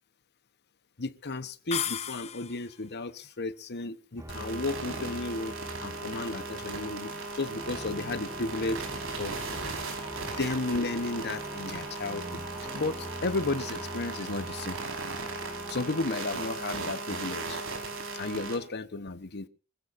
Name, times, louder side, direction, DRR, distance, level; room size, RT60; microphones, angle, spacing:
voice 1, 1.0-8.8 9.2-9.4 10.2-14.8 15.7-17.6 18.1-19.5, left 2 dB, 50° left, 1.1 m, -33 dB
sound 1, 1.7-2.8, left 9 dB, 30° left, 0.7 m, -34 dB
sound 2, 4.2-16.1, right 1 dB, 15° right, 1.6 m, -44 dB
sound 3, 4.3-18.6, right 3 dB, 65° right, 5.1 m, -37 dB
25.5 x 15.5 x 2.7 m
head